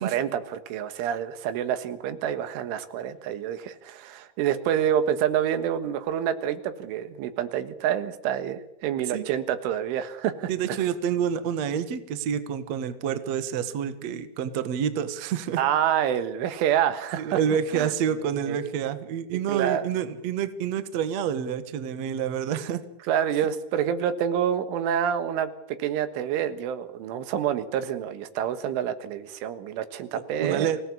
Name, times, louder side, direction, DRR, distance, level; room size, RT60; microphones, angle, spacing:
voice 1, 0.0-10.8 15.6-17.4 17.7-17.9 18.5-18.6 19.5-19.9 23.1-25.5 25.8-30.7, right 9 dB, 90° right, 11 dB, 4.0 m, -27 dB
voice 2, 10.5-15.6 17.2-22.8 30.1-30.8, right 8 dB, 70° right, 11 dB, 1.6 m, -28 dB
25.0 x 17.5 x 8.5 m, 0.85 s
omnidirectional pair, 5.5 m